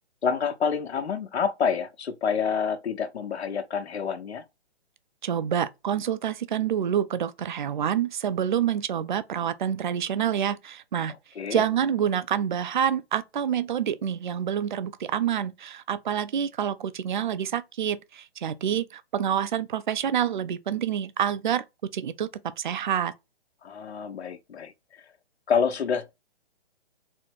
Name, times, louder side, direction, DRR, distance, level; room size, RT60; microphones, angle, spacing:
voice 1, 0.2-4.4 11.3-11.6 23.6-25.0 25.5-26.1, left 6 dB, 85° left, 1.0 m, -28 dB
voice 2, 5.2-11.1 11.5-21.6 21.9-22.3 22.6-23.1, right 9 dB, 50° right, 0.5 m, -27 dB
4.2 x 2.1 x 4.6 m
hypercardioid pair, 170°, 32 cm